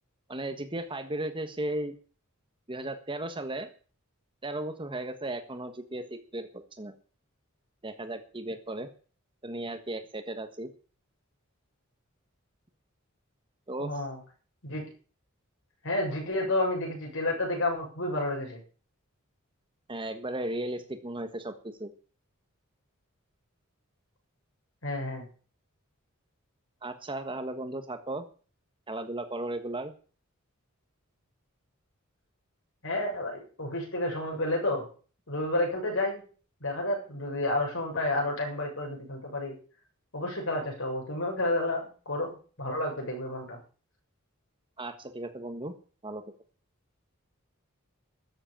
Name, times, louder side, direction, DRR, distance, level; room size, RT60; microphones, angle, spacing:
voice 1, 0.3-1.9 2.7-3.7 4.4-6.9 7.8-8.9 9.4-10.7 13.7-13.9 19.9-21.5 21.8-21.9 26.8-28.2 28.9-29.9 44.8-45.7 46.0-46.2, right 1 dB, 25° right, 9 dB, 1.4 m, -35 dB
voice 2, 13.8-14.2 14.6-14.8 15.8-18.6 24.8-25.3 32.8-34.9 35.3-36.2 36.6-39.6 40.1-43.6, left 1 dB, 65° left, 0 dB, 7.3 m, -30 dB
13.5 x 8.0 x 8.7 m, 0.40 s
head